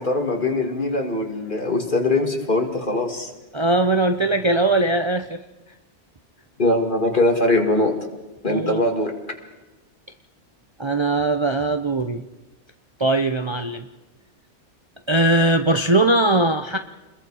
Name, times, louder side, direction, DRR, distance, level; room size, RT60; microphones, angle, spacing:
voice 1, 0.0-3.3 6.6-7.9 8.4-9.1, left 2 dB, 45° left, 3 dB, 2.6 m, -21 dB
voice 2, 3.5-5.4 8.5-8.8 10.8-12.2 13.0-13.9 15.1-16.8, right 2 dB, 30° right, 7 dB, 0.7 m, -20 dB
29.0 x 21.5 x 4.9 m, 1.1 s
omnidirectional pair, 1.2 m